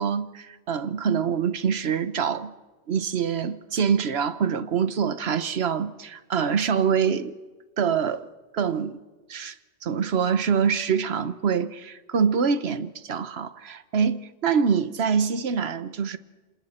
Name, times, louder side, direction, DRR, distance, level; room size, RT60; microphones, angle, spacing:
voice 1, 0.0-2.5 2.9-7.3 7.8-8.3 8.5-9.0 9.3-9.5 9.8-16.2, right 6 dB, 60° right, 1.2 m, -25 dB
28.5 x 26.5 x 4.4 m
omnidirectional pair, 1.2 m